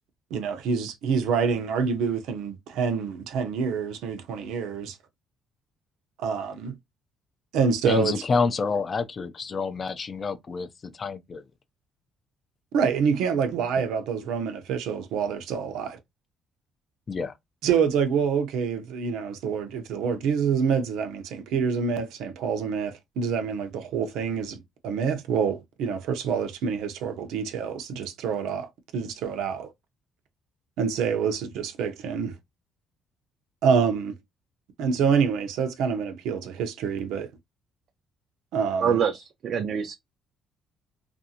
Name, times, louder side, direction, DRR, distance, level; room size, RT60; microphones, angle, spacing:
voice 1, 0.3-5.0 6.2-6.8 7.5-8.2 12.7-16.0 17.6-29.7 30.8-32.4 33.6-34.2 34.8-37.3 38.5-39.0, right 6 dB, 90° right, 0.6 m, -26 dB
voice 2, 7.8-11.4 17.1-17.3, left 4 dB, 30° left, 0.3 m, -28 dB
voice 3, 38.8-39.9, right 7 dB, 50° right, 0.3 m, -25 dB
2.5 x 2.4 x 2.7 m
cardioid pair, 145°, 0 cm